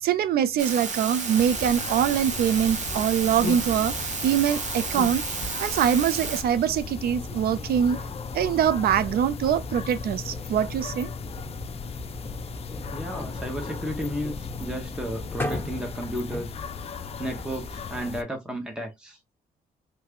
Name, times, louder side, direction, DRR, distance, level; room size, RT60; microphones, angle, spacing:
voice 1, 0.0-5.2 5.6-8.0 8.3-11.1, right 9 dB, 75° right, 0.4 m, -24 dB
sound 1, 0.6-6.4, right 4 dB, 50° right, 1.0 m, -32 dB
sound 2, 1.3-18.2, left 5 dB, 40° left, 0.4 m, -37 dB
sound 3, 7.0-16.4, left 2 dB, 15° left, 1.2 m, -37 dB
voice 2, 12.9-16.5 16.9-19.2, equal, 5° right, 0.8 m, -33 dB
3.2 x 2.4 x 3.5 m
cardioid pair, 100°, 16 cm